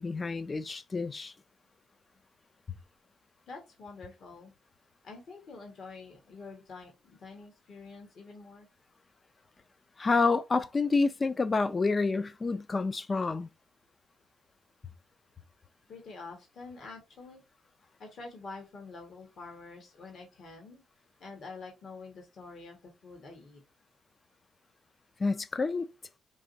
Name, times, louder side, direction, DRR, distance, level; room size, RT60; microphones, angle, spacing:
voice 1, 0.0-1.3 10.0-13.5 25.2-25.9, left 4 dB, 30° left, 0.5 m, -28 dB
voice 2, 3.5-4.5 5.0-8.7 15.9-17.4 18.0-20.8 21.2-23.6, left 3 dB, 60° left, 1.5 m, -47 dB
4.7 x 3.0 x 2.7 m
cardioid pair, 90°, 0 cm